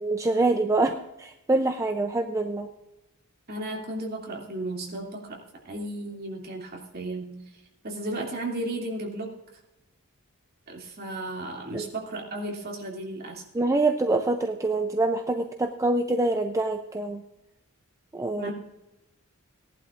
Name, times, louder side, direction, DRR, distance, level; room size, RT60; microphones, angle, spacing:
voice 1, 0.0-2.7 11.7-11.9 13.5-17.2 18.1-18.5, right 2 dB, 15° right, 5 dB, 0.5 m, -25 dB
voice 2, 3.5-5.4 5.6-7.4 7.8-9.3 10.7-13.4 18.4-18.5, right 1 dB, 45° right, -1 dB, 2.6 m, -34 dB
18.0 x 11.0 x 2.5 m, 0.92 s
head